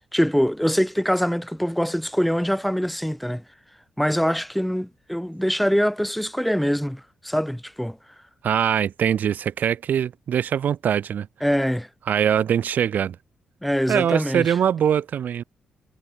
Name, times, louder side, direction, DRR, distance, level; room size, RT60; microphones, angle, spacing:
voice 1, 0.1-3.4 4.0-8.0 11.4-11.9 13.6-14.6, equal, ahead, 7.1 m, -23 dB
voice 2, 8.4-11.3 12.1-13.2 13.9-15.4, right 9 dB, 65° right, 6.2 m, -22 dB
cardioid pair, 75°, 3 cm